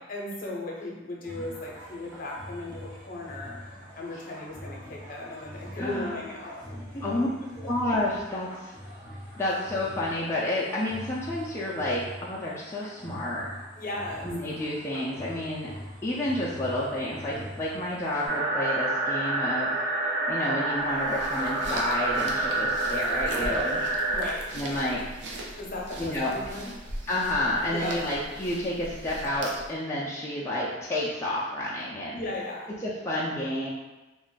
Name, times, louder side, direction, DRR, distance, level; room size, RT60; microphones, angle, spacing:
voice 1, 0.1-6.6 6.9-7.0 13.8-14.3 23.3-23.5 24.1-24.5 25.6-26.7 27.7-28.0 32.1-32.7, left 1 dB, 50° left, -3 dB, 0.6 m, -36 dB
sound 1, 1.2-18.4, equal, 10° right, 1.1 m, -44 dB
voice 2, 5.8-6.2 7.0-7.3 7.6-8.7 9.4-13.5 14.2-15.7 16.0-19.7 20.3-23.8 24.5-25.1 26.0-26.3 27.1-32.2 32.8-33.7, left 1 dB, 15° left, -7 dB, 0.3 m, -30 dB
sound 2, 18.3-24.3, right 2 dB, 50° right, 0.8 m, -28 dB
sound 3, 20.8-29.8, right 1 dB, 75° right, 0.5 m, -40 dB
2.5 x 2.1 x 3.8 m, 1.1 s
head